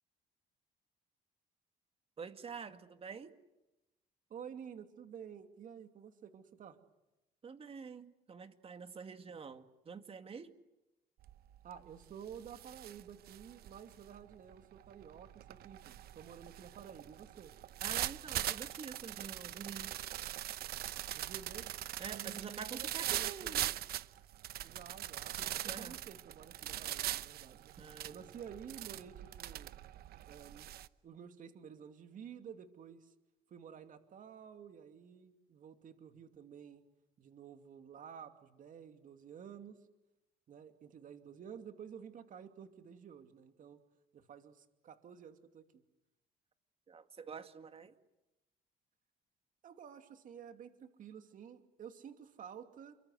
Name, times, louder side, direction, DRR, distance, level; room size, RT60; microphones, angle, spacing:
voice 1, 2.2-3.3 7.4-10.5 17.8-19.9 22.0-23.7 25.7-26.0 27.8-28.3 46.9-47.9, right 6 dB, 35° right, 8 dB, 2.2 m, -47 dB
voice 2, 4.3-6.8 11.6-17.5 21.1-21.7 22.1-23.7 24.6-27.7 28.0-29.7 30.3-30.7 31.0-33.1 33.5-36.8 37.2-39.8 40.5-43.8 44.1-45.8 49.6-52.9, right 8 dB, 50° right, 7 dB, 2.6 m, -51 dB
sound 1, 11.2-11.6 11.9-30.9, right 13 dB, 65° right, 0.9 m, -41 dB
29.0 x 24.5 x 8.0 m, 0.97 s
cardioid pair, 110°, 17 cm